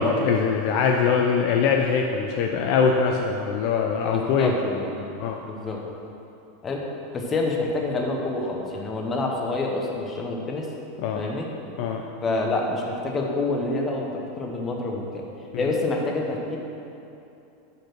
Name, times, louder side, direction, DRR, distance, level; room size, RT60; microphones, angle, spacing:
voice 1, 0.0-4.5 5.2-5.4 11.0-11.2 11.8-12.0 15.5-15.7, left 5 dB, 40° left, 2 dB, 0.4 m, -22 dB
voice 2, 4.1-5.1 5.5-5.8 6.6-6.9 7.1-10.7 11.1-11.5 12.2-15.3 15.6-16.6, left 2 dB, 15° left, 0 dB, 0.7 m, -27 dB
6.7 x 5.2 x 6.0 m, 2.8 s
supercardioid pair, 180°, 0 cm